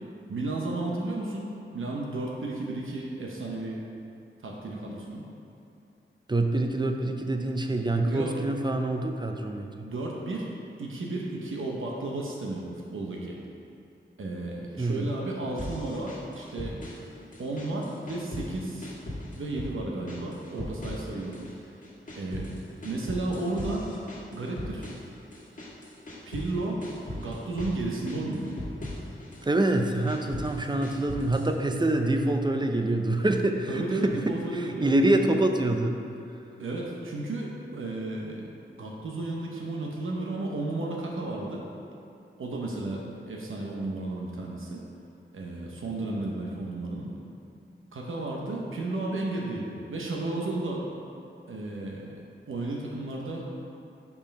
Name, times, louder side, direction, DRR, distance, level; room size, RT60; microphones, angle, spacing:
voice 1, 0.3-3.8 4.4-5.2 8.1-8.3 9.8-10.5 10.8-13.4 14.2-16.8 17.4-18.9 19.3-21.4 22.2-22.5 22.8-23.9 24.3-24.9 26.3-26.8 27.2-28.5 33.7-35.4 36.6-38.5 38.8-41.6 42.4-44.8 45.3-47.2 47.9-50.8 51.5-52.1 52.5-53.5, right 2 dB, 80° right, -2 dB, 0.8 m, -33 dB
voice 2, 6.3-9.7 14.8-15.1 29.4-34.1 34.5-35.9, right 2 dB, 20° right, 4 dB, 0.6 m, -26 dB
sound 1, 15.6-17.1 17.3-18.6 18.8-19.8 20.1-21.5 21.8-26.5 26.8-27.8 28.1-29.4 29.8-31.5, left 1 dB, 40° left, 1.6 m, -39 dB
5.5 x 4.7 x 5.2 m, 2.7 s
wide cardioid pair, 65°, 21 cm